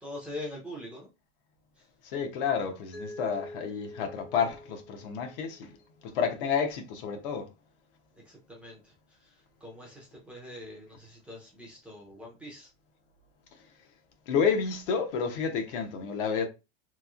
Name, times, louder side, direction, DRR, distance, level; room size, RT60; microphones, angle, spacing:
voice 1, 0.0-1.1 1.8-1.9 8.3-12.7, left 1 dB, 5° right, 0.4 m, -43 dB
voice 2, 2.0-5.7 6.0-7.5 14.3-16.5, left 6 dB, 65° left, 0.8 m, -30 dB
Mallet percussion, 2.9-5.8, left 1 dB, 50° left, 1.1 m, -45 dB
3.0 x 2.7 x 2.4 m
supercardioid pair, 170°, 29 cm